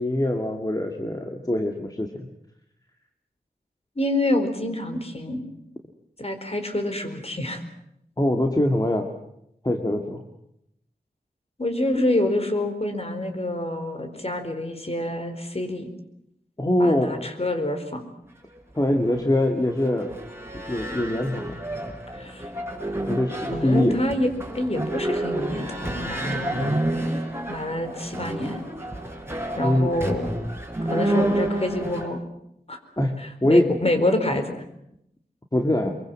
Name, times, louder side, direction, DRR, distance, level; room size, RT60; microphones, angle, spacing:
voice 1, 0.0-2.3 8.2-9.1 9.6-10.2 16.6-17.3 18.7-20.1 20.7-21.6 23.0-24.0 29.6-29.9 33.0-33.7 35.5-35.9, left 1 dB, 25° left, 3 dB, 2.2 m, -23 dB
voice 2, 4.0-5.4 6.2-7.6 11.6-15.9 16.8-18.1 22.1-22.5 23.5-26.7 27.5-28.6 29.6-30.3 30.8-32.2 32.7-32.8 33.2-34.5, left 1 dB, 40° left, 6 dB, 4.3 m, -27 dB
sound 1, 18.5-32.1, right 1 dB, 15° right, 4.7 m, -30 dB
24.5 x 23.0 x 7.6 m, 0.77 s
wide cardioid pair, 60°, 16 cm